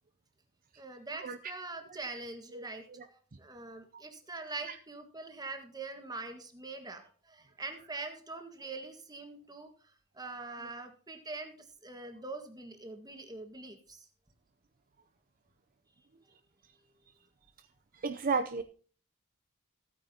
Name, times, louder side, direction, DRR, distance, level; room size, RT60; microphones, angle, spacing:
voice 1, 0.8-14.1, right 3 dB, 20° right, 6 dB, 1.6 m, -44 dB
voice 2, 17.9-18.6, right 4 dB, 40° right, 9 dB, 0.6 m, -33 dB
15.5 x 9.2 x 2.9 m, 0.42 s
head